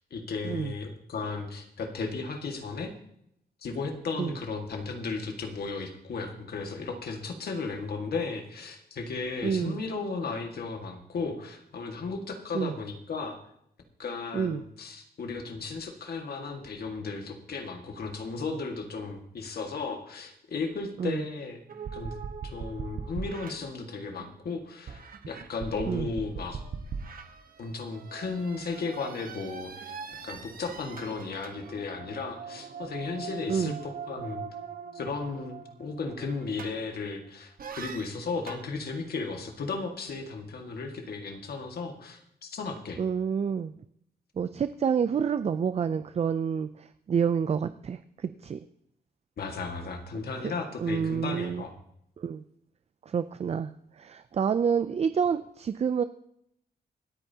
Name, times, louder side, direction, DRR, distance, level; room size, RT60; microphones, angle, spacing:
voice 1, 0.1-2.9 3.6-13.4 14.0-21.6 21.9-22.2 22.4-26.6 27.6-30.0 30.2-34.5 34.9-43.0 49.4-51.7, left 4 dB, 70° left, 4 dB, 1.9 m, -35 dB
voice 2, 9.4-9.8 12.5-12.7 14.3-14.6 21.0-21.2 25.9-26.1 33.5-33.8 43.0-43.7 44.4-48.6 50.4-50.5 50.8-51.6 52.2-52.4 53.1-53.7 54.0-56.0, right 7 dB, 40° right, 12 dB, 0.4 m, -28 dB
sound 1, 21.7-24.4 24.9-37.1 37.6-38.7, right 5 dB, 60° right, 1.2 m, -41 dB
26.5 x 8.9 x 2.9 m, 0.75 s
wide cardioid pair, 130°, 17 cm